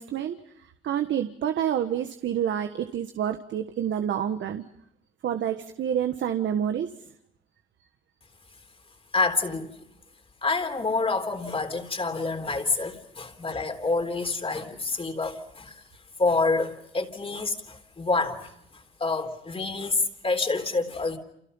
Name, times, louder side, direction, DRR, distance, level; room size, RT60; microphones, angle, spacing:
voice 1, 0.0-4.6 5.2-6.9, right 9 dB, 70° right, 1.4 m, -28 dB
voice 2, 9.1-9.7 10.4-15.8 16.2-21.2, left 3 dB, 30° left, 3.7 m, -27 dB
29.5 x 28.5 x 5.6 m
cardioid pair, 90°, 20 cm